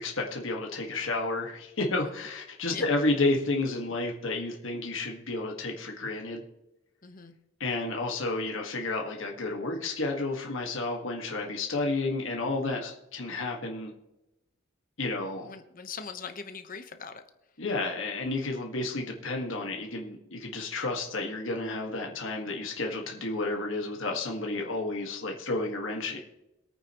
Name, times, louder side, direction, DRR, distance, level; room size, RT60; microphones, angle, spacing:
voice 1, 0.0-6.4 7.6-13.9 15.0-15.5 17.6-26.2, left 2 dB, 65° left, 0 dB, 1.7 m, -31 dB
voice 2, 7.0-7.3 15.4-17.2, left 5 dB, 40° left, 7 dB, 1.0 m, -41 dB
22.5 x 8.9 x 3.0 m, 0.92 s
head